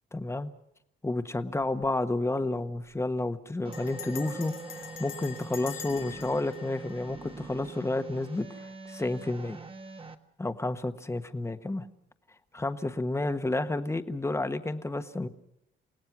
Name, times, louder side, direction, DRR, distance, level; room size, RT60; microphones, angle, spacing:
voice 1, 0.1-0.5 1.0-9.6 10.4-11.9 12.5-15.3, left 2 dB, 15° left, 8 dB, 1.4 m, -31 dB
Bell, 1.6-2.0 2.2-2.3 2.6-2.9 3.7-7.8, left 9 dB, 85° left, 2.1 m, -45 dB
sound 1, 3.6-10.1, right 3 dB, 25° right, 1.5 m, -44 dB
29.0 x 17.5 x 6.1 m, 0.79 s
cardioid pair, 90°, 20 cm